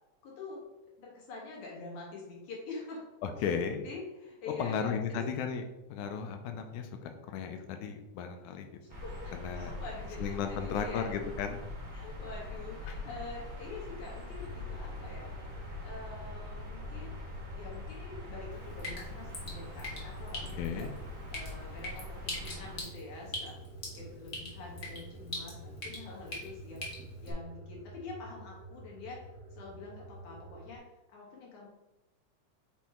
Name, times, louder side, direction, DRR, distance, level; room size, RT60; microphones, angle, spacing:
voice 1, 0.2-0.6 1.0-3.0 3.4-5.2 8.8-11.1 11.9-15.3 15.8-17.2 17.6-20.9 21.3-23.6 23.9-26.9 27.2-29.2 29.5-30.8 31.1-31.7, left 3 dB, 75° left, -3 dB, 3.0 m, -46 dB
voice 2, 3.2-3.9 4.6-5.6 5.9-8.8 9.3-9.7 10.2-11.6 20.6-20.9, left 6 dB, 90° left, 6 dB, 2.1 m, -35 dB
sound 1, 8.9-22.8, left 2 dB, 35° right, 1.6 m, -43 dB
sound 2, 14.4-30.8, right 1 dB, 80° right, 2.3 m, -49 dB
Drip, 18.5-27.3, left 1 dB, 55° left, 0.8 m, -43 dB
6.2 x 3.6 x 4.3 m, 0.98 s
omnidirectional pair, 3.5 m